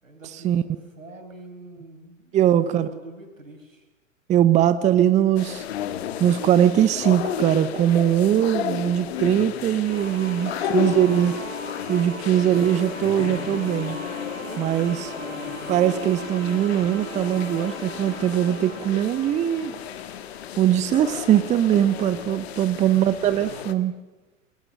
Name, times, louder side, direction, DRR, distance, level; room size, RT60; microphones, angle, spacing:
voice 1, 0.0-3.9 10.5-11.3 15.0-15.8 22.9-23.7, right 2 dB, 85° right, 4 dB, 5.8 m, -45 dB
voice 2, 2.3-2.9 4.3-5.6 6.2-11.4 11.9-14.0 14.6-15.1 15.7-19.8 20.6-23.9, right 11 dB, 20° right, 14 dB, 0.8 m, -21 dB
sound 1, 5.4-23.7, left 10 dB, 55° left, 1.8 m, -33 dB
sound 2, 9.9-20.6, left 2 dB, 85° left, 7.0 m, -37 dB
27.5 x 21.0 x 6.5 m, 1.1 s
figure-of-eight pair, 105°, 39 cm